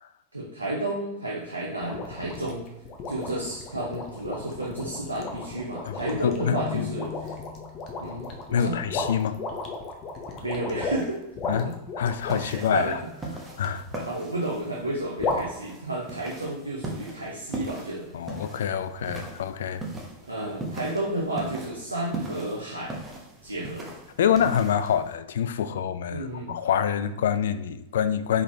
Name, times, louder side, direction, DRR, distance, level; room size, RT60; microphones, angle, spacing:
voice 1, 0.3-2.7 3.1-7.3 8.0-8.8 10.4-11.2 11.4-11.7 12.3-12.9 13.9-18.1 20.3-22.9 23.4-23.9 26.1-26.6, right 1 dB, 80° right, 0.8 m, -32 dB
sound 1, 1.8-12.8 15.2-15.4, left 3 dB, 35° left, 0.8 m, -34 dB
voice 2, 6.2-6.9 8.5-9.4 11.5-13.0 13.6-13.8 18.1-19.8 24.2-28.4, left 8 dB, 60° left, 0.3 m, -26 dB
Keyboard (musical), 6.4-8.3, left 10 dB, 80° left, 0.8 m, -39 dB
sound 2, 12.1-25.2, right 2 dB, 15° right, 1.0 m, -40 dB
4.7 x 3.9 x 2.7 m
figure-of-eight pair, 90°, 0 cm